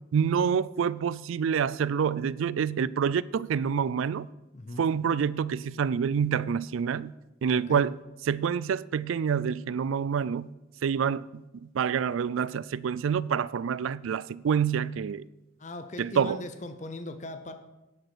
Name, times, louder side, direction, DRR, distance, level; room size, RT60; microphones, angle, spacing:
voice 1, 0.0-4.3 4.8-7.1 7.4-8.0 8.3-10.5 10.8-15.2 16.0-16.4, right 7 dB, 80° right, 0.3 m, -27 dB
voice 2, 4.5-4.9 7.5-7.8 15.6-17.5, left 1 dB, 35° left, 0.7 m, -39 dB
10.5 x 7.9 x 6.1 m
head